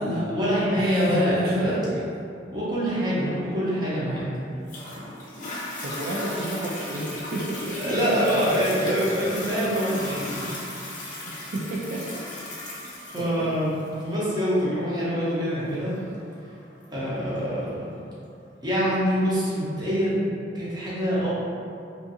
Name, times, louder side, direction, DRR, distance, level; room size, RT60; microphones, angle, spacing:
voice 1, 0.0-1.7 2.5-4.2 7.8-10.4 13.1-13.7 14.0-16.0 16.9-17.9 18.6-20.2 20.5-21.3, equal, 25° right, -9 dB, 0.7 m, -25 dB
voice 2, 0.8-2.1 5.8-9.0 11.3-12.2 13.2-13.6, right 1 dB, 55° right, -6 dB, 0.3 m, -32 dB
Toilet flush, 4.7-17.7 18.3-18.4, left 1 dB, 45° left, 0.5 m, -37 dB
2.5 x 2.5 x 2.6 m, 2.5 s
head